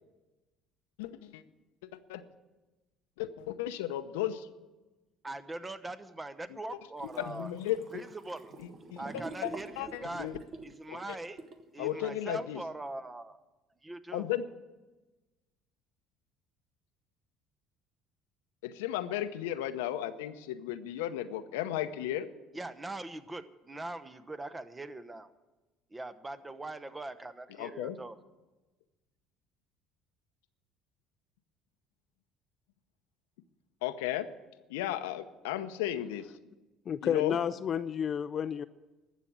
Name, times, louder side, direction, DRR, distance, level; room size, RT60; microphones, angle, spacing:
voice 1, 1.0-1.4 2.1-2.2 3.2-4.5 7.2-8.0 8.6-10.4 10.9-11.2 11.8-12.6 14.1-14.4 18.6-22.3 27.6-28.0 33.8-34.3 34.7-36.3 37.0-37.4, left 12 dB, 90° left, 10 dB, 0.7 m, -35 dB
voice 2, 5.2-7.5 7.9-8.6 9.0-11.4 11.7-13.4 13.8-14.3 22.5-25.3 25.9-28.2, right 2 dB, 15° right, 13 dB, 0.9 m, -41 dB
sound 1, 7.0-11.7, right 3 dB, 40° right, 1.3 m, -47 dB
voice 3, 36.9-38.6, left 8 dB, 45° left, 12 dB, 0.4 m, -31 dB
12.5 x 7.4 x 10.0 m, 1.1 s
supercardioid pair, 90°, 0 cm